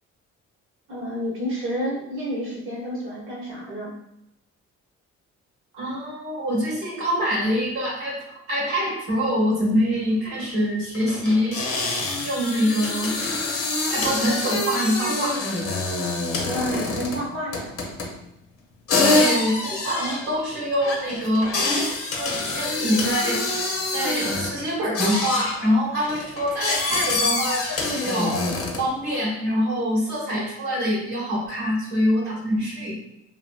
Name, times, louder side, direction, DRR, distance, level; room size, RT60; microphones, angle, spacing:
voice 1, 0.9-3.9 16.4-17.7, equal, 45° right, -5 dB, 1.1 m, -29 dB
voice 2, 5.7-13.1 13.9-15.4 19.0-21.5 22.1-23.5 23.9-27.6 27.9-28.5 28.8-32.9, equal, 70° right, -5 dB, 1.3 m, -25 dB
sound 1, 9.9-10.0 10.2-10.4 10.9-17.3 17.5-18.2 18.9-24.6 24.9-25.6 26.0-28.9, left 2 dB, 50° left, 0.7 m, -26 dB
2.9 x 2.7 x 2.3 m, 0.81 s
supercardioid pair, 70°, 29 cm